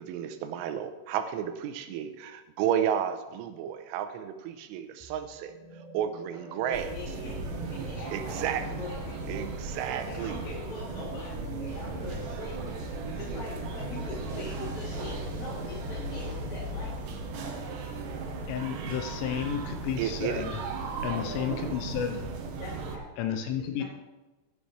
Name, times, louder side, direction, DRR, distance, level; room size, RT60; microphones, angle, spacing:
voice 1, 0.0-5.5 5.9-7.0 8.1-8.8 9.3-10.4 20.0-20.4, right 9 dB, 90° right, 9 dB, 3.2 m, -32 dB
sound 1, 5.0-19.4, right 2 dB, ahead, 2.4 m, -49 dB
voice 2, 6.3-9.3 9.7-12.6 13.0-17.0 18.7-18.8 19.2-19.5 20.9-22.0 22.6-23.2 23.6-23.8, left 2 dB, 45° left, -6 dB, 5.1 m, -43 dB
sound 2, 6.7-23.0, right 3 dB, 70° right, 2.1 m, -36 dB
voice 3, 18.5-20.6 21.0-22.3 23.2-23.8, left 8 dB, 80° left, 6 dB, 3.4 m, -32 dB
15.5 x 10.0 x 3.3 m, 1.1 s
omnidirectional pair, 5.6 m